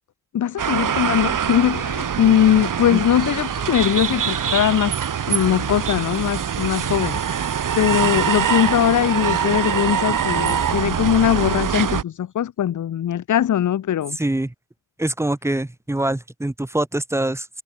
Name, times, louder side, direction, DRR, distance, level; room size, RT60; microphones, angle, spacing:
voice 1, 0.3-4.9 5.3-7.2 7.7-14.2, left 10 dB, 65° left, 0.8 m, -20 dB
sound 1, 0.6-12.0, right 8 dB, 70° right, 3.2 m, -23 dB
voice 2, 14.1-14.5 15.0-17.5, right 1 dB, 10° right, 1.5 m, -24 dB
wide cardioid pair, 120°, 33 cm